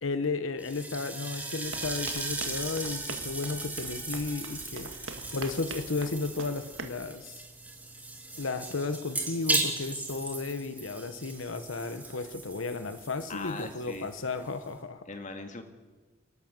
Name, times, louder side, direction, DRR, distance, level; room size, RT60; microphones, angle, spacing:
voice 1, 0.0-7.4 8.4-15.1, left 3 dB, 85° left, 10 dB, 1.0 m, -34 dB
sound 1, 0.6-14.8, right 2 dB, 10° right, 2.7 m, -37 dB
sound 2, 1.6-7.0, right 4 dB, 80° right, 1.7 m, -44 dB
voice 2, 13.3-14.1 15.1-15.6, left 3 dB, 40° left, 6 dB, 1.9 m, -40 dB
28.5 x 12.0 x 7.5 m, 1.3 s
head